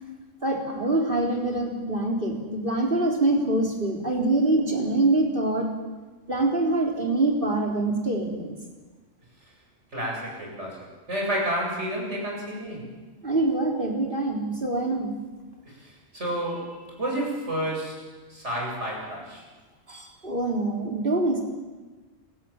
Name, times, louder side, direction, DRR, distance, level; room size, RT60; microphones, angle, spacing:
voice 1, 0.4-5.7 6.3-8.6 13.2-15.1 19.9-21.4, right 2 dB, 45° right, 0 dB, 4.1 m, -25 dB
voice 2, 9.9-12.8 16.1-18.0 18.3-19.4, right 1 dB, 65° right, -2 dB, 8.0 m, -30 dB
28.5 x 14.0 x 8.9 m, 1.3 s
omnidirectional pair, 1.3 m